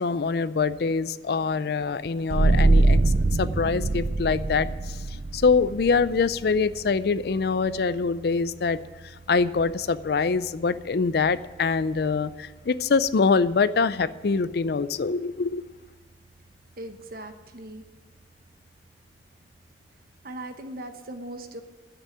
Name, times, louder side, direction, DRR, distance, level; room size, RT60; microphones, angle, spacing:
voice 1, 0.0-15.6, left 4 dB, 60° left, 16 dB, 0.4 m, -24 dB
sound 1, 2.3-13.5, right 2 dB, 35° right, 0.4 m, -27 dB
voice 2, 16.8-17.8 20.2-21.6, right 1 dB, 55° right, 7 dB, 1.1 m, -39 dB
9.8 x 8.3 x 9.2 m, 1.3 s
head